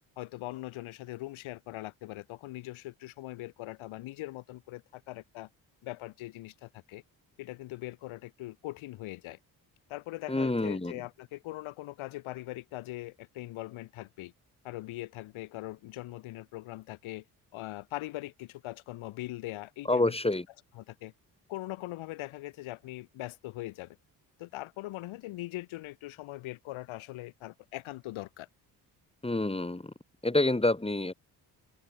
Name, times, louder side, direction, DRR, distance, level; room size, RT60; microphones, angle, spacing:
voice 1, 0.2-5.5 5.8-7.0 7.4-9.4 9.9-14.3 14.6-17.2 17.5-20.2 20.7-21.1 21.5-24.0 24.4-28.5, left 17 dB, 75° left, 4.4 m, -41 dB
voice 2, 10.3-10.9 19.9-20.4 29.2-29.9 30.2-31.1, left 2 dB, 10° left, 2.1 m, -27 dB
open air
hypercardioid pair, 45°, 48 cm